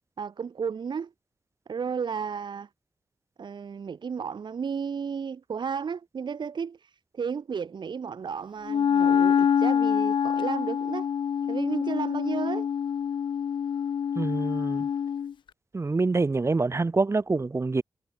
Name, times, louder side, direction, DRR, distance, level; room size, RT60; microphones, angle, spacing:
voice 1, 0.2-1.1 1.7-2.7 3.4-11.1 11.5-12.7, right 6 dB, 70° right, 2.4 m, -33 dB
Wind instrument woodwind instrument, 8.7-15.3, left 8 dB, 90° left, 0.7 m, -26 dB
voice 2, 14.2-14.9 15.7-17.8, right 3 dB, 35° right, 2.1 m, -26 dB
wide cardioid pair, 90°, 8 cm